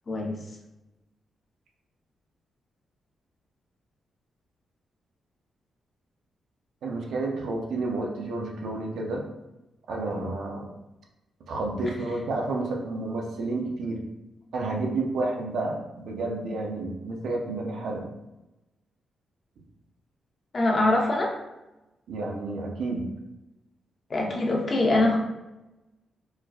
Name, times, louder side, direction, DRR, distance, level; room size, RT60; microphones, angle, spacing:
voice 1, 0.1-0.4 20.5-21.4 24.1-25.2, left 2 dB, 45° left, -1 dB, 0.8 m, -23 dB
voice 2, 6.8-9.2 9.9-10.7 11.5-14.0 14.5-18.1 22.1-23.1, right 2 dB, 80° right, 1 dB, 0.6 m, -30 dB
4.4 x 2.3 x 2.4 m, 0.98 s
cardioid pair, 70°, 0 cm